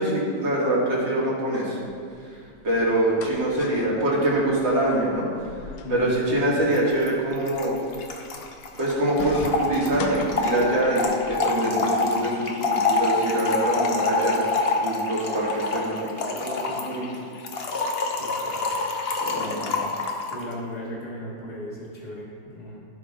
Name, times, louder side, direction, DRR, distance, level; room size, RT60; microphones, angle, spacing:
voice 1, 0.0-1.8 2.6-5.3 5.9-7.7 8.8-14.5 14.8-17.2 19.2-19.8, right 1 dB, 70° right, -6 dB, 2.9 m, -24 dB
Office basement bathroom door, 2.6-11.0, left 4 dB, 80° left, 1.4 m, -40 dB
voice 2, 5.8-6.2 18.2-18.7 19.3-19.7 20.3-22.8, left 1 dB, 25° left, -8 dB, 1.3 m, -37 dB
Trickle dribble / Fill (with liquid), 6.7-6.8 7.0-7.1 7.3-20.4, left 3 dB, 55° left, 0.7 m, -27 dB
15.0 x 5.0 x 3.7 m, 2.3 s
omnidirectional pair, 2.1 m